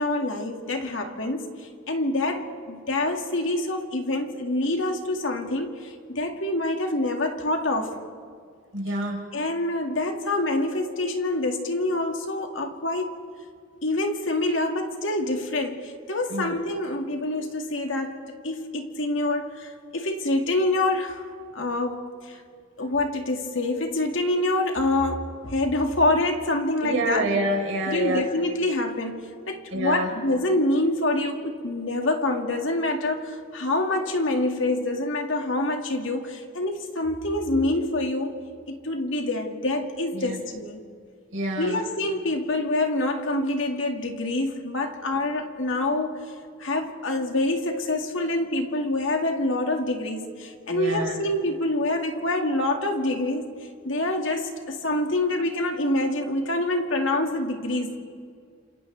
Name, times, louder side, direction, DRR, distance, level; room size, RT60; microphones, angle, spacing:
voice 1, 0.0-8.0 9.3-13.2 13.8-18.2 18.4-21.2 21.5-22.4 22.8-27.2 27.9-38.4 38.7-40.8 41.6-46.3 46.6-53.5 53.8-58.0, left 2 dB, 75° left, 3 dB, 2.1 m, -26 dB
voice 2, 8.7-9.2 16.3-16.6 26.8-28.2 29.7-30.1 40.1-40.4 41.3-41.8 50.7-51.2, right 1 dB, 80° right, -1 dB, 4.4 m, -27 dB
29.5 x 27.5 x 3.4 m, 2.1 s
head